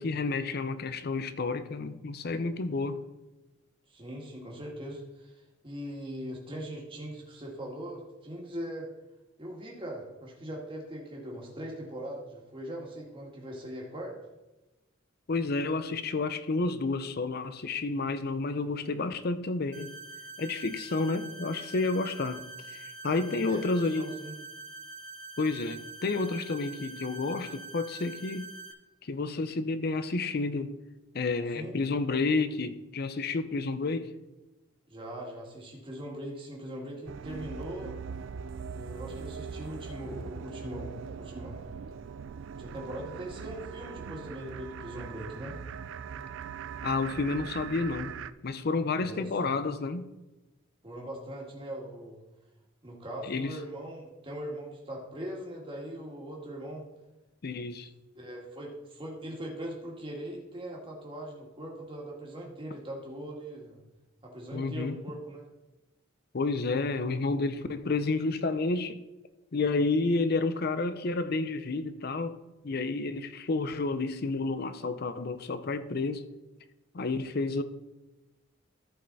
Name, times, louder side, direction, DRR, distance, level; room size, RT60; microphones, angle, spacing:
voice 1, 0.0-3.0 15.3-19.9 20.4-22.4 22.7-24.1 25.4-28.5 29.0-30.8 31.1-34.1 46.8-50.1 53.2-53.6 57.4-57.9 64.5-65.0 66.3-69.0 69.5-72.4 72.6-76.3 76.9-77.6, left 3 dB, 50° left, 0.6 m, -30 dB
voice 2, 3.9-8.9 9.4-14.1 23.3-23.6 23.9-24.3 31.5-31.7 34.9-38.0 38.7-41.6 42.5-45.6 49.0-49.3 50.8-52.2 52.8-56.8 58.2-63.8 64.2-65.4, right 1 dB, 25° right, 2.0 m, -40 dB
sound 1, 19.7-28.7, right 2 dB, 45° right, 1.2 m, -45 dB
sound 2, 37.1-48.3, right 6 dB, 70° right, 0.3 m, -41 dB
14.0 x 5.5 x 4.1 m
head